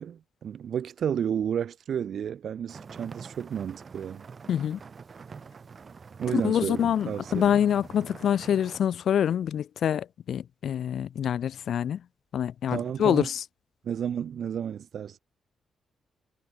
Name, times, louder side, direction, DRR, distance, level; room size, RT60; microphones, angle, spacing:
voice 1, 0.0-4.2 6.2-7.5 12.7-13.3 13.8-15.2, right 8 dB, 55° right, 0.6 m, -32 dB
sound 1, 2.7-8.8, right 5 dB, 30° right, 3.8 m, -45 dB
voice 2, 4.5-4.8 6.3-12.0 12.3-13.4, left 9 dB, 60° left, 0.5 m, -26 dB
cardioid pair, 155°, 0 cm